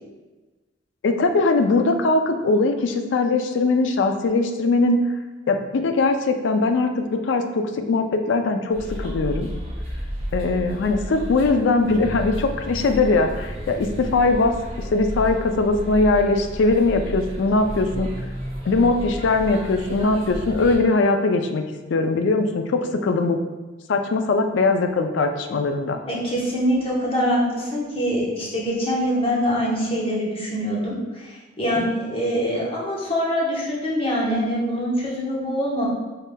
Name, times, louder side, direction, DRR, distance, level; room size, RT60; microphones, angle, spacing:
voice 1, 1.0-5.0 5.5-9.5 10.3-14.6 14.9-18.1 18.7-21.6 21.9-23.4 23.9-26.0, left 3 dB, 75° left, 6 dB, 0.4 m, -21 dB
sound 1, 8.7-20.8, equal, 30° right, 1.0 m, -32 dB
voice 2, 26.1-35.9, equal, 30° left, -5 dB, 1.0 m, -24 dB
4.7 x 3.2 x 2.2 m, 1.2 s
head